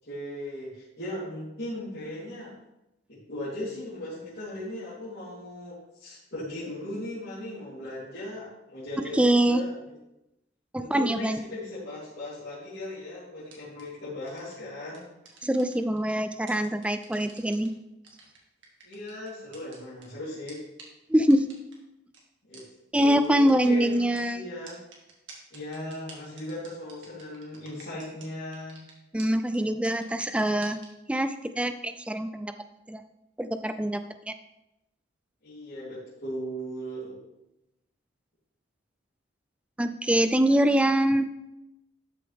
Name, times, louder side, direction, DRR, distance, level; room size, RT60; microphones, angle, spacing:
voice 1, 0.0-2.5 3.1-9.9 10.8-15.1 18.8-20.6 22.4-22.6 22.9-24.8 25.5-28.8 35.4-37.2, left 1 dB, 55° left, -12 dB, 3.3 m, -38 dB
voice 2, 9.0-9.6 10.7-11.4 15.4-17.7 21.1-21.5 22.9-24.4 29.1-30.8 31.1-32.5 32.9-33.0 33.4-34.0 34.3-34.4 39.8-41.3, right 1 dB, 5° right, 10 dB, 0.4 m, -24 dB
sound 1, 13.4-13.8 14.3-14.5 14.9-16.1 16.5-17.7 18.0-20.0 20.5-20.6 20.8-20.9 21.3-21.7 22.1-22.2 22.5-22.6 22.9-23.0 23.2-24.2 24.7-28.3 28.5-28.9 29.2-29.3 29.5-29.6 29.8-30.9, right 5 dB, 65° right, 2.0 m, -49 dB
12.5 x 6.3 x 3.5 m, 0.90 s
head